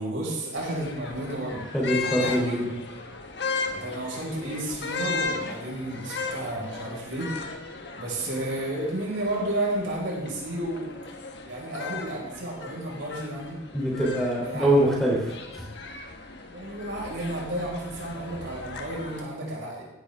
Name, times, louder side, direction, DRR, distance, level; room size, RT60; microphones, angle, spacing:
voice 1, 0.0-1.6 2.0-2.7 3.7-7.3 8.0-11.0 11.4-13.6 14.4-14.7 16.5-19.8, right 1 dB, 75° right, -3 dB, 5.6 m, -32 dB
sound 1, 0.6-19.2, left 4 dB, 55° left, 1.5 m, -37 dB
voice 2, 1.7-2.7 13.7-15.6, right 1 dB, ahead, -4 dB, 3.4 m, -24 dB
16.0 x 11.5 x 3.7 m, 0.98 s
head